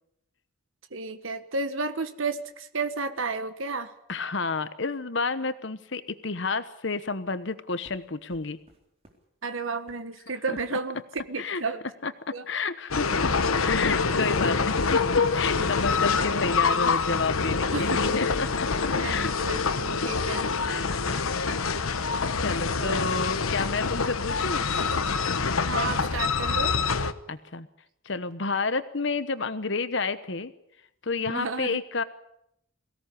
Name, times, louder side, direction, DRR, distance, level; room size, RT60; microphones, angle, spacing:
voice 1, 0.9-3.9 9.4-11.0 11.3-11.8 12.3-12.4 13.1-13.2 17.7-18.2 19.0-20.5 22.8-23.0 25.6-26.8 31.3-31.8, right 4 dB, 70° right, 9 dB, 1.4 m, -32 dB
voice 2, 4.1-8.6 10.5-10.6 11.4-11.6 12.0-13.3 13.6-15.0 15.3-18.7 19.0-19.3 20.6-20.9 22.4-24.7 27.3-27.7 28.0-30.5 31.0-32.0, left 4 dB, 60° left, 12 dB, 1.1 m, -30 dB
sound 1, 7.8-9.3 9.5-10.1 10.6-10.8 11.1-11.4 12.3-12.4 12.7-12.9 13.4-19.2, equal, 30° right, 3.9 m, -51 dB
sound 2, 12.9-27.1, left 4 dB, 90° left, 1.3 m, -26 dB
23.0 x 17.0 x 10.0 m, 0.77 s
head